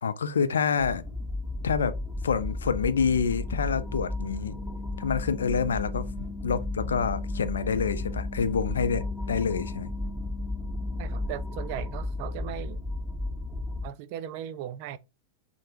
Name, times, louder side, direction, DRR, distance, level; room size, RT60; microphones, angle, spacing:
voice 1, 0.0-1.0 1.6-1.9 2.2-4.5 5.0-9.9, left 6 dB, 70° left, 0.3 m, -27 dB
sound 1, 0.8-13.9, left 2 dB, 5° left, 1.2 m, -34 dB
sound 2, 2.3-12.4, left 4 dB, 30° left, 1.0 m, -43 dB
voice 2, 11.0-12.8 13.8-15.0, right 10 dB, 45° right, 0.3 m, -37 dB
3.2 x 2.1 x 2.7 m
figure-of-eight pair, 90°, 0 cm